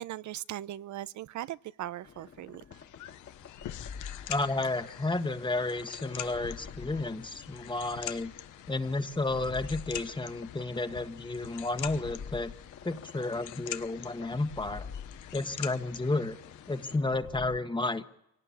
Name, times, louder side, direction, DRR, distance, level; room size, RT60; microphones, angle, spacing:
voice 1, 0.0-2.8, right 13 dB, 70° right, 0.8 m, -39 dB
sound 1, 2.0-17.6, left 6 dB, 50° left, 2.1 m, -48 dB
sound 2, 2.7-17.0, left 12 dB, 80° left, 1.1 m, -45 dB
voice 2, 4.3-8.3 8.7-12.5 12.8-14.9 15.3-16.4 16.7-18.0, left 2 dB, 15° left, 1.5 m, -32 dB
25.0 x 18.0 x 8.5 m
cardioid pair, 90°, 30 cm